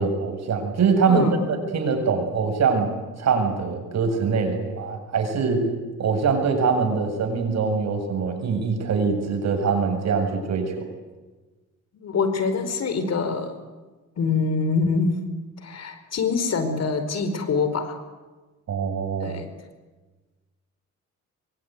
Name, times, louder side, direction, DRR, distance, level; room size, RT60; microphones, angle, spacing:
voice 1, 0.0-2.9 3.2-5.7 6.0-10.9 18.7-19.4, right 5 dB, 60° right, 5 dB, 7.5 m, -23 dB
voice 2, 1.1-1.4 11.9-13.5 14.2-15.1 15.6-18.0 19.2-19.5, left 4 dB, 60° left, 10 dB, 4.8 m, -24 dB
24.5 x 24.0 x 9.6 m, 1.2 s
cardioid pair, 90°, 30 cm